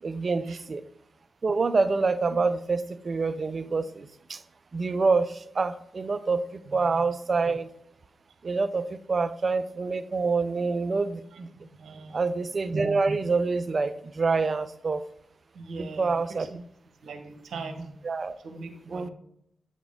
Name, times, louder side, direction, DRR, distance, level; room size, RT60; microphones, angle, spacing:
voice 1, 0.0-0.8 1.4-4.4 4.7-7.7 8.4-11.5 12.1-15.0 15.8-16.5 18.0-18.3 18.9-19.1, right 4 dB, 55° right, 12 dB, 0.5 m, -27 dB
voice 2, 6.7-7.0 11.5-12.3 15.5-16.5 17.0-17.9 18.4-19.1, right 3 dB, 80° right, 5 dB, 1.0 m, -41 dB
8.0 x 3.7 x 3.7 m, 0.75 s
supercardioid pair, 45°, 0 cm